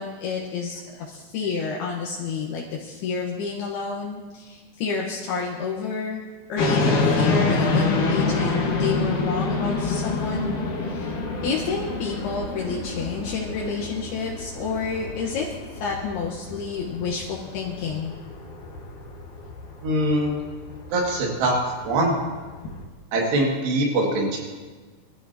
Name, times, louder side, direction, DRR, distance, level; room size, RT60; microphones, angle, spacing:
voice 1, 0.0-6.2 6.5-15.5 15.8-18.1, left 5 dB, 70° left, -3 dB, 3.2 m, -30 dB
sound 1, 6.6-22.8, left 3 dB, 55° left, 2.7 m, -27 dB
voice 2, 19.8-20.4 20.9-21.6 21.8-22.1 23.1-24.4, right 1 dB, 80° right, -1 dB, 4.5 m, -22 dB
23.0 x 14.0 x 3.0 m, 1.4 s
omnidirectional pair, 4.8 m